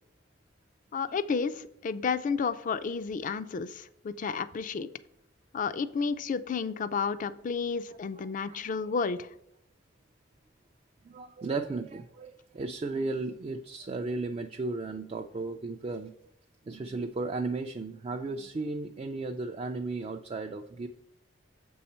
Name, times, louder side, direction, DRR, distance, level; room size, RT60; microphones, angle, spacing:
voice 1, 0.9-4.9 5.5-9.3, left 5 dB, 40° left, 14 dB, 0.4 m, -31 dB
voice 2, 8.2-8.6 11.0-16.1 16.7-20.9, right 3 dB, 30° right, 5 dB, 0.3 m, -35 dB
7.1 x 5.5 x 4.3 m, 0.79 s
head